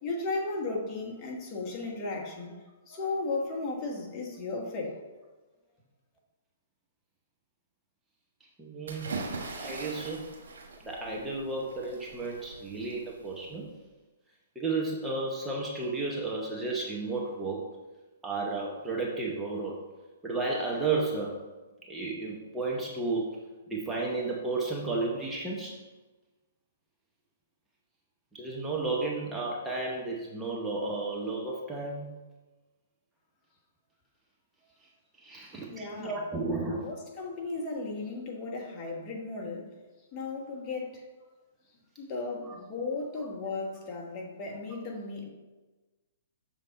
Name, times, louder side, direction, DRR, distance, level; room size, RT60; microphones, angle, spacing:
voice 1, 0.0-2.6 2.9-4.9 35.7-36.1 36.7-39.7 40.1-41.0 42.0-45.3, left 3 dB, 30° left, -1 dB, 1.3 m, -35 dB
voice 2, 8.6-9.1 9.6-10.2 10.8-13.7 14.5-17.6 18.2-19.8 20.2-21.4 21.8-23.4 23.7-25.8 28.3-32.2 35.2-36.9 42.4-42.5, right 3 dB, 10° right, -3 dB, 0.9 m, -33 dB
sound 1, 8.9-13.7, right 3 dB, 70° right, 1.2 m, -41 dB
6.6 x 3.5 x 4.1 m, 1.2 s
hypercardioid pair, 125°, 0 cm